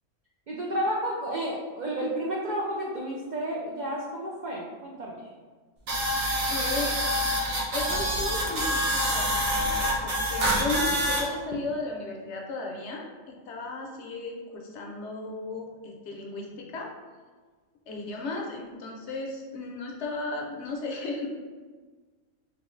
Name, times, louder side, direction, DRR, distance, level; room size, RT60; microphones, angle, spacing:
voice 1, 0.5-5.3, right 1 dB, 70° right, -3 dB, 0.4 m, -31 dB
sound 1, 5.9-11.2, equal, 90° right, 1.3 m, -26 dB
voice 2, 6.4-6.9 7.7-16.9 17.9-21.3, left 3 dB, 65° left, 1 dB, 0.8 m, -35 dB
3.7 x 3.0 x 3.1 m, 1.4 s
omnidirectional pair, 1.4 m